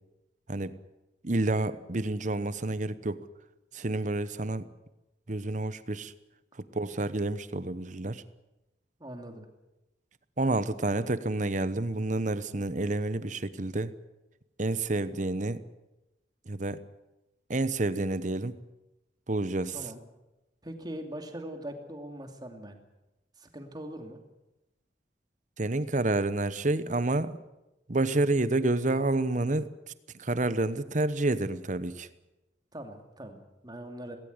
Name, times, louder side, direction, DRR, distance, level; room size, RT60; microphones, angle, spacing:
voice 1, 1.2-3.2 3.7-4.7 5.3-6.1 6.7-8.2 10.4-13.9 14.6-15.6 16.5-16.8 17.5-18.6 19.3-19.8 25.6-27.4 27.9-29.7 30.2-32.1, right 2 dB, 45° right, 14 dB, 1.0 m, -29 dB
voice 2, 9.0-9.5 19.7-20.0 20.6-22.8 23.4-24.2 32.7-34.2, right 1 dB, 25° right, 5 dB, 2.8 m, -41 dB
19.0 x 17.5 x 9.7 m, 0.97 s
head